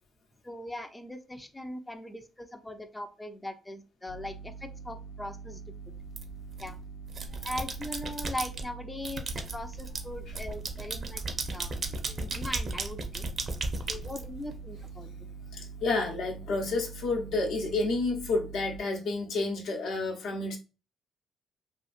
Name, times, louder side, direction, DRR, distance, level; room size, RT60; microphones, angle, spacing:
voice 1, 0.4-5.6 6.6-6.8 7.4-11.2 11.5-11.7 12.1-13.3 13.9-15.1, left 1 dB, 10° left, 7 dB, 0.4 m, -40 dB
sound 1, 4.1-18.8, right 5 dB, 90° left, 0.4 m, -44 dB
sound 2, 6.1-6.7 7.1-8.6 9.0-14.8, right 3 dB, 50° right, 0.6 m, -35 dB
voice 2, 15.5-20.6, left 3 dB, 75° left, 2 dB, 0.7 m, -30 dB
2.7 x 2.5 x 2.4 m, 0.31 s
cardioid pair, 90°, 0 cm